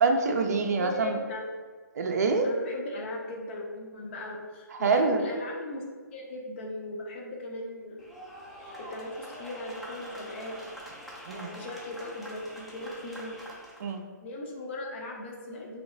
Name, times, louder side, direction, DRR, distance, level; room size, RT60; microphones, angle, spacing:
voice 1, 0.0-1.2 1.9-2.5 4.8-5.2 11.3-11.5 13.8-14.0, right 4 dB, 55° right, 3 dB, 0.4 m, -25 dB
voice 2, 0.8-1.5 2.4-5.8 6.1-8.0 8.6-10.6 11.3-13.3 14.2-15.8, left 1 dB, 35° left, 0 dB, 0.7 m, -38 dB
sound 1, 8.0-13.9, equal, ahead, 0.5 m, -45 dB
3.0 x 2.8 x 3.1 m, 1.5 s
figure-of-eight pair, 130°, 10 cm